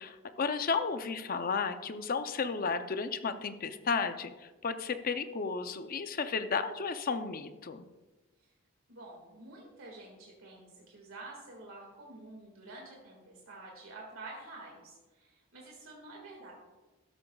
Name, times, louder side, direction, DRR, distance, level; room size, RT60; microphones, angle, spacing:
voice 1, 0.0-7.9, left 5 dB, 45° left, 10 dB, 0.5 m, -33 dB
voice 2, 8.9-16.5, right 2 dB, 80° right, -2 dB, 2.0 m, -49 dB
13.0 x 11.5 x 2.4 m, 1.2 s
head